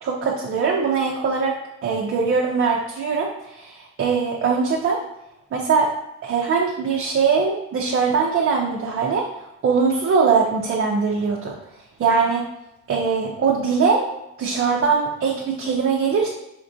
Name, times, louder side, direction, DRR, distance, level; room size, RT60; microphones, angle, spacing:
voice 1, 0.0-5.0 5.5-5.9 6.2-11.5 12.0-12.4 12.9-14.1 14.4-16.3, right 5 dB, 45° right, -2 dB, 0.6 m, -21 dB
5.1 x 2.5 x 2.6 m, 0.90 s
cardioid pair, 90°, 30 cm